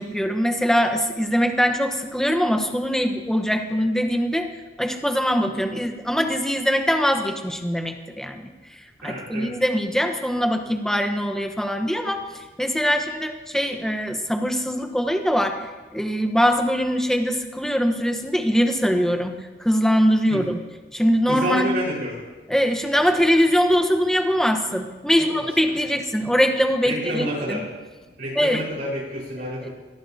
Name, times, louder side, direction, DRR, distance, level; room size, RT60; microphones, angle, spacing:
voice 1, 0.0-4.5 4.8-20.6 20.9-21.7 22.5-27.6 28.3-28.6 29.6-29.7, equal, 5° left, 5 dB, 1.2 m, -22 dB
voice 2, 9.0-9.5 20.3-20.4 21.3-22.2 25.3-25.7 26.8-27.6 28.0-29.7, equal, 65° right, -5 dB, 5.1 m, -29 dB
23.5 x 18.5 x 2.9 m, 1.2 s
head